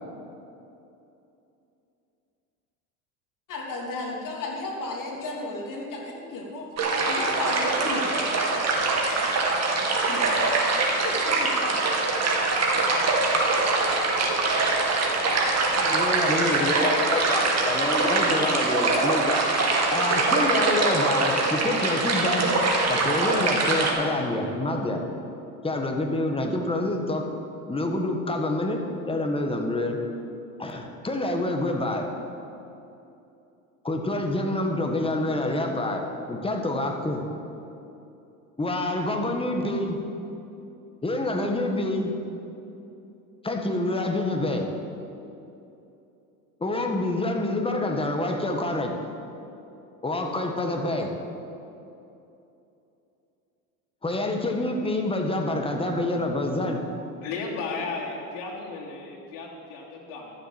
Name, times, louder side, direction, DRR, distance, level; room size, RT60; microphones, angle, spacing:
voice 1, 3.5-6.7 6.9-8.1 10.1-11.7, left 1 dB, 45° left, -1 dB, 3.2 m, -33 dB
sound 1, 6.8-23.9, right 3 dB, 35° right, 2.4 m, -23 dB
voice 2, 15.8-19.4 19.9-22.5 22.9-25.0 25.6-27.3 27.7-30.0 30.6-32.1 33.8-37.2 38.6-40.0 41.0-42.1 43.4-44.7 46.6-48.9 50.0-51.1 54.0-56.8, left 2 dB, 10° left, 3 dB, 1.7 m, -27 dB
voice 3, 57.2-60.3, left 4 dB, 70° left, -3 dB, 3.3 m, -34 dB
13.0 x 7.5 x 7.7 m, 2.8 s
supercardioid pair, 95°, 46 cm